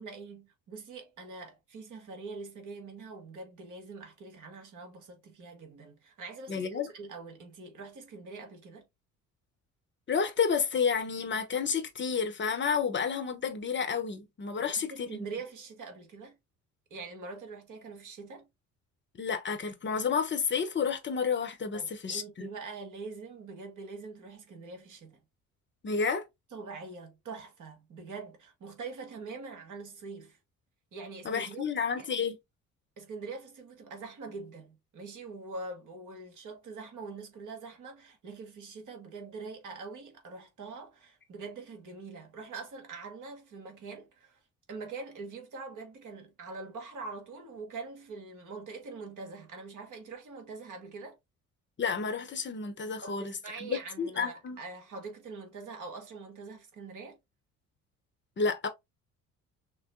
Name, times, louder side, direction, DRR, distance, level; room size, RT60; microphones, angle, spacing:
voice 1, 0.0-8.9 14.6-16.4 16.9-18.5 21.7-25.2 26.5-30.4 30.9-31.7 31.9-32.1 33.0-44.4 44.7-51.2 53.0-57.2, right 4 dB, 45° right, 1.7 m, -44 dB
voice 2, 6.5-6.9 10.1-15.3 19.2-22.5 25.8-26.2 31.2-32.4 51.8-53.3 53.6-54.6 58.4-58.7, left 6 dB, 25° left, 1.0 m, -30 dB
6.0 x 2.1 x 2.6 m
figure-of-eight pair, 50°, 41 cm